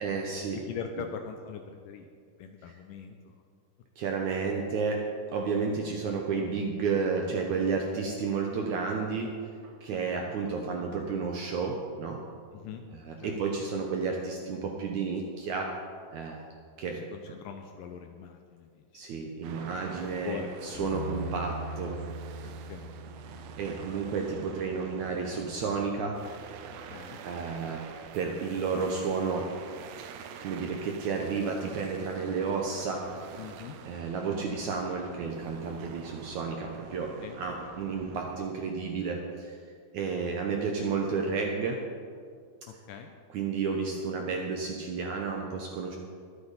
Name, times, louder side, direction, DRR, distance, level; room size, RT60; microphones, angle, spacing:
voice 1, 0.0-0.6 2.7-2.8 4.0-12.2 12.9-15.7 16.1-16.4 16.8-17.0 18.9-22.0 23.3-26.2 27.2-27.9 28.1-29.5 30.4-33.3 33.9-39.6 39.9-41.8 43.3-46.0, right 5 dB, 70° right, 1 dB, 1.8 m, -32 dB
voice 2, 0.7-2.1 2.4-3.3 9.9-10.1 12.5-12.8 13.2-13.4 16.9-19.0 20.2-20.5 20.8-21.3 22.4-23.0 23.3-23.5 26.9-27.3 27.6-27.8 33.4-33.8 37.2-37.4 42.7-43.1, left 7 dB, 80° left, 5 dB, 2.0 m, -42 dB
sound 1, 19.4-38.4, right 7 dB, 90° right, 1.7 m, -47 dB
Bass guitar, 20.7-27.0, right 1 dB, 20° left, 3.7 m, -42 dB
22.0 x 8.2 x 4.1 m, 2.1 s
omnidirectional pair, 4.4 m